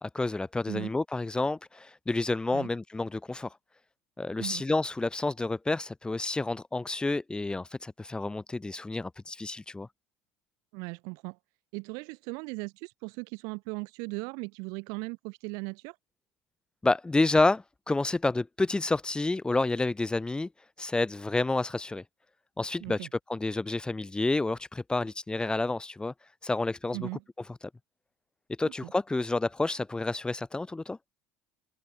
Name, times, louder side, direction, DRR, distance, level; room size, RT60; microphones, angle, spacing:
voice 1, 0.0-3.5 4.2-9.9 16.8-20.5 20.8-22.0 22.6-26.1 26.4-27.1 28.6-31.0, left 2 dB, 15° left, 1.9 m, -29 dB
voice 2, 10.7-11.4 11.7-16.0 22.8-23.1 26.9-27.2 28.6-28.9, right 32 dB, 70° right, 2.0 m, -38 dB
hypercardioid pair, 80°, 6 cm